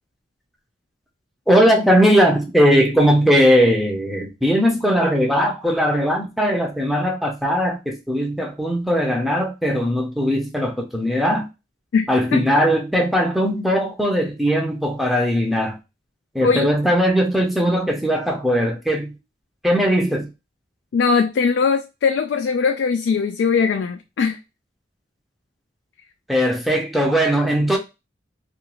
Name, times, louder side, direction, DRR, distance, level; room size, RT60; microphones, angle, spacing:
voice 1, 1.5-11.5 12.1-15.8 16.3-19.1 19.6-20.3 26.3-27.8, equal, ahead, 0.6 m, -19 dB
voice 2, 20.9-24.4, left 5 dB, 80° left, 0.3 m, -20 dB
2.4 x 2.4 x 2.9 m
head